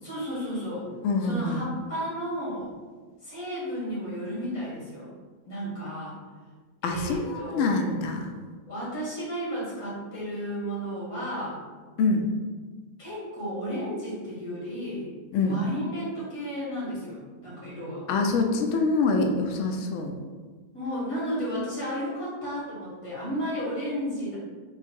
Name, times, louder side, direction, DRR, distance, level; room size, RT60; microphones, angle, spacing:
voice 1, 0.0-0.9 1.2-2.7 3.2-5.1 5.4-6.2 6.8-7.9 8.7-11.6 13.0-15.1 15.4-18.0 20.7-24.4, equal, 90° left, -8 dB, 2.1 m, -33 dB
voice 2, 1.0-1.6 6.8-8.3 12.0-12.2 15.3-15.6 18.1-20.1, left 3 dB, 65° left, 3 dB, 0.8 m, -25 dB
3.8 x 2.4 x 4.4 m, 1.4 s
omnidirectional pair, 1.5 m